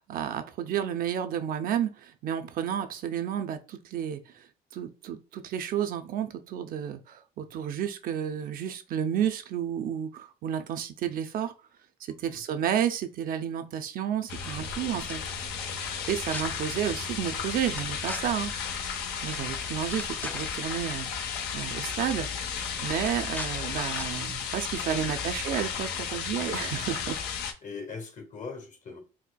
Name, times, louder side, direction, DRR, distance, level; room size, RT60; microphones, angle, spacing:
voice 1, 0.0-4.5 4.7-11.5 12.0-15.2 16.1-18.8 19.2-21.1 21.5-22.3 22.8-27.2, right 9 dB, 60° right, 0.4 m, -31 dB
voice 2, 12.1-12.4 27.6-29.0, left 4 dB, 50° left, 0.8 m, -41 dB
sound 1, 14.2-14.7 15.1-15.2 16.0-16.4 17.8-18.2 19.3-19.4 19.7-20.5 21.5-21.6 21.9-22.2 23.0-23.5 23.9-24.1, left 2 dB, 10° left, 0.3 m, -40 dB
sound 2, 14.3-27.5, left 7 dB, 80° left, 0.5 m, -34 dB
4.1 x 2.2 x 2.2 m
cardioid pair, 110°, 17 cm